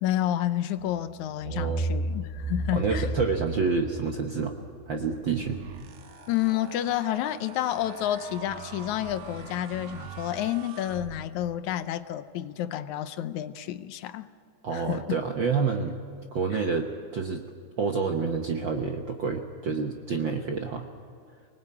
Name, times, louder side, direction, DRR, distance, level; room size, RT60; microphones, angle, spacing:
voice 1, 0.0-3.1 6.3-14.3 14.7-15.2 16.5-16.6, left 12 dB, 75° left, 12 dB, 2.1 m, -30 dB
sound 1, 0.8-1.0 1.4-6.0, right 2 dB, 10° left, 4.6 m, -33 dB
voice 2, 1.4-1.8 2.7-4.5 4.9-5.6 14.6-16.0 16.3-17.4 17.8-20.9, right 5 dB, 60° right, 4 dB, 1.3 m, -28 dB
sound 2, 5.2-11.6, right 7 dB, 80° right, 2.8 m, -44 dB
24.5 x 19.5 x 8.6 m, 2.3 s
omnidirectional pair, 3.5 m